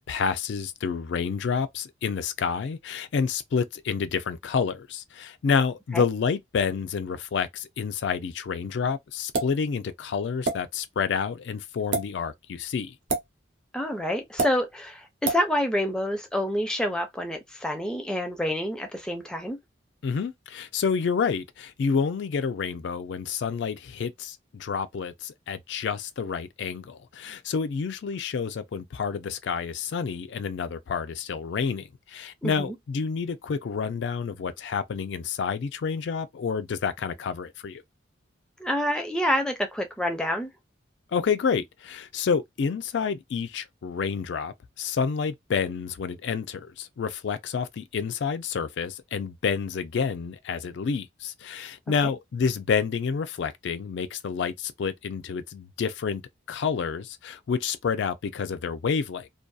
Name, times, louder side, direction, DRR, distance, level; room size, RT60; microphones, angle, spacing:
voice 1, 0.0-12.9 20.0-37.8 41.1-56.2 56.5-59.3, left 6 dB, 70° left, 0.4 m, -29 dB
sound 1, 9.3-9.6 10.4-10.6 11.8-12.0 13.1-13.3 14.4-14.5 15.2-15.4, right 3 dB, 75° right, 0.8 m, -26 dB
voice 2, 13.7-19.6 32.4-32.7 38.6-40.5 52.0-52.1, equal, 5° left, 0.5 m, -27 dB
2.6 x 2.3 x 2.3 m
head